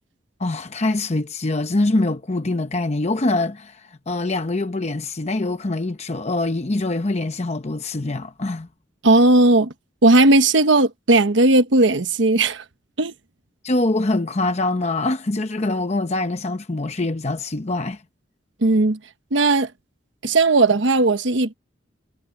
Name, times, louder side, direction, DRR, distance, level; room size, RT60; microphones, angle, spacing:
voice 1, 0.4-8.7 13.6-18.0, left 2 dB, 35° left, 0.8 m, -24 dB
voice 2, 9.0-9.7 10.0-12.6 13.0-13.1 18.6-19.0 19.3-19.7 20.2-21.5, right 2 dB, 70° right, 1.1 m, -16 dB
head